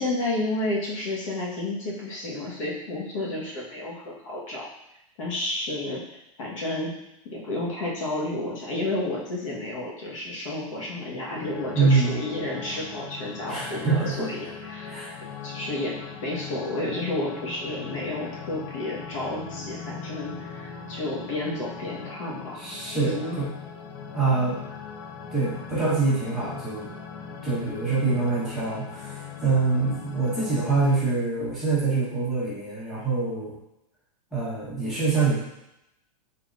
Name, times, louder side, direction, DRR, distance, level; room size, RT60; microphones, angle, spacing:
voice 1, 0.0-4.7 5.2-6.0 6.4-6.9 7.3-14.9 15.4-15.9 16.2-22.6 23.0-23.4, left 2 dB, 70° left, -4 dB, 1.4 m, -31 dB
sound 1, 11.3-31.0, left 6 dB, 40° left, 0.5 m, -40 dB
voice 2, 11.7-12.2 13.5-14.3 14.9-15.1 22.5-23.5 24.1-24.6 25.3-26.9 27.4-33.5 34.3-35.4, right 4 dB, ahead, -11 dB, 1.2 m, -25 dB
4.3 x 3.8 x 2.5 m, 0.85 s
supercardioid pair, 165°, 17 cm